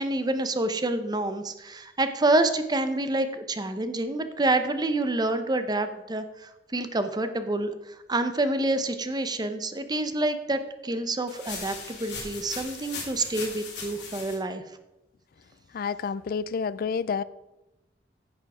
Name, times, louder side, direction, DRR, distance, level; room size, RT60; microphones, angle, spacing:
voice 1, 0.0-14.6, right 2 dB, 25° right, 0.7 m, -27 dB
sound 1, 11.3-14.3, left 4 dB, 75° left, 3.1 m, -38 dB
voice 2, 15.7-17.2, left 6 dB, 55° left, 0.4 m, -29 dB
10.0 x 7.2 x 4.8 m
head